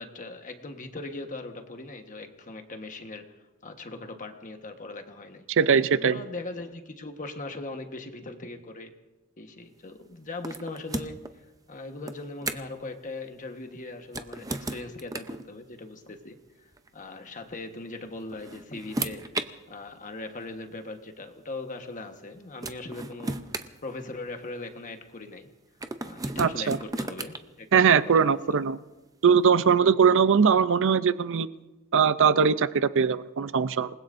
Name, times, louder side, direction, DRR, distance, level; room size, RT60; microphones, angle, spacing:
voice 1, 0.0-3.3 3.6-5.5 6.0-8.9 9.4-11.4 11.7-23.4 23.8-25.5 26.0-28.6 29.5-29.7, left 2 dB, 35° left, 1.3 m, -40 dB
voice 2, 5.5-6.2 26.4-26.8 27.7-28.8 29.2-31.5 31.9-33.9, right 6 dB, 60° right, 0.5 m, -21 dB
sound 1, 10.4-11.3 12.1-12.8 14.0-15.4 16.7-16.9 18.1-19.5 20.5-20.6 22.2-22.3 22.6-24.5 25.8-27.4, right 2 dB, 15° right, 0.6 m, -35 dB
28.0 x 20.0 x 2.6 m
head